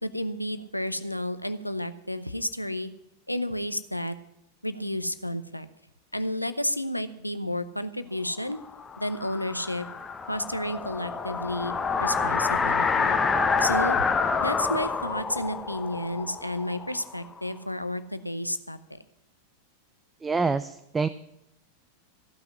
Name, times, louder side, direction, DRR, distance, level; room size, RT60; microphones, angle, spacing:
voice 1, 0.0-2.9 3.3-4.1 4.6-5.7 6.1-8.6 9.0-9.9 10.3-13.2 13.6-14.0 14.4-19.0, left 1 dB, 90° left, 12 dB, 0.8 m, -31 dB
sound 1, 8.7-17.4, left 5 dB, 15° left, 0.9 m, -27 dB
voice 2, 20.2-21.1, right 4 dB, 15° right, 14 dB, 0.4 m, -26 dB
15.0 x 5.9 x 9.8 m, 0.81 s
figure-of-eight pair, 90°, 0 cm